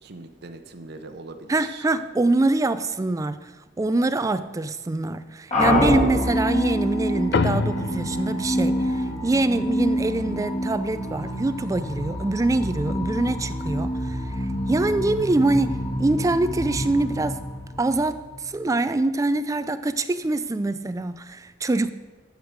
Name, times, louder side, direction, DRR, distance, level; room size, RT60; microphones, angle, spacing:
voice 1, 0.0-1.8, right 3 dB, 60° right, 0.8 m, -41 dB
voice 2, 1.5-17.4 17.8-21.9, right 2 dB, 15° right, 0.3 m, -24 dB
sound 1, 5.5-18.4, equal, 40° left, 3.1 m, -27 dB
sound 2, 7.3-12.1, left 4 dB, 60° left, 0.5 m, -31 dB
12.5 x 8.2 x 5.1 m
head